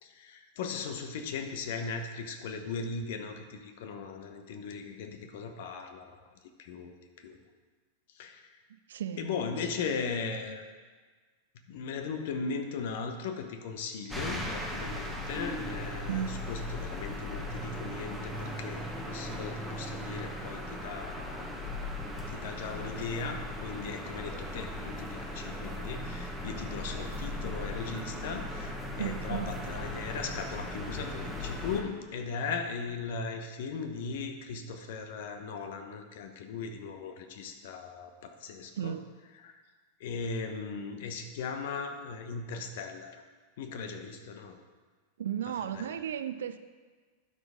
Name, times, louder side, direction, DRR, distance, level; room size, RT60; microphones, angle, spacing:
voice 1, 0.0-6.3 6.6-7.4 8.1-8.6 9.2-10.6 11.5-21.7 22.3-39.0 39.4-39.6 40.0-43.2 43.6-44.6 45.5-46.0, left 5 dB, 55° left, 6 dB, 1.0 m, -38 dB
voice 2, 8.9-9.3 16.1-16.5 29.0-29.6 38.8-39.1 45.2-46.6, right 9 dB, 60° right, 12 dB, 0.4 m, -34 dB
sound 1, 14.1-31.8, left 1 dB, 5° left, 1.3 m, -38 dB
12.0 x 5.1 x 5.0 m, 1.4 s
figure-of-eight pair, 90°, 0 cm